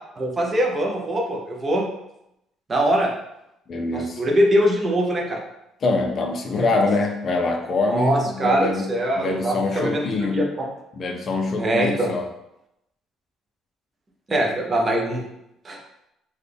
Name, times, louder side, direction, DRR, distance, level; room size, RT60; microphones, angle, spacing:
voice 1, 0.2-1.9 2.7-3.1 3.9-5.4 7.9-10.7 11.6-12.1 14.3-15.2 15.6-15.8, right 1 dB, 20° right, 0 dB, 0.5 m, -22 dB
voice 2, 3.7-4.2 5.8-10.5 11.0-12.3, left 3 dB, 35° left, 3 dB, 0.5 m, -24 dB
3.9 x 2.2 x 3.3 m, 0.83 s
cardioid pair, 155°, 0 cm